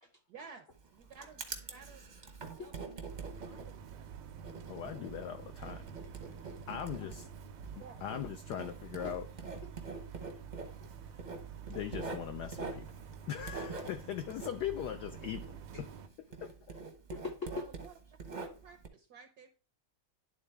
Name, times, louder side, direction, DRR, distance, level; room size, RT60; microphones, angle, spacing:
voice 1, 0.3-0.7 0.9-1.4 1.7-2.2 2.6-2.7 3.2-4.1 7.8-8.0 17.5-17.9 18.4-19.5, right 5 dB, 70° right, 0.9 m, -53 dB
Writing, 0.7-16.0 16.3-18.9, right 4 dB, 45° right, 0.5 m, -45 dB
sound 1, 3.1-16.1, right 7 dB, 90° right, 1.6 m, -49 dB
voice 2, 4.7-6.0 6.3-7.3 7.7-9.3 11.1-11.2 11.7-15.9 16.4-16.8, left 10 dB, 85° left, 0.9 m, -41 dB
voice 3, 17.1-17.6, left 4 dB, 55° left, 0.6 m, -42 dB
11.0 x 3.8 x 3.3 m
omnidirectional pair, 2.3 m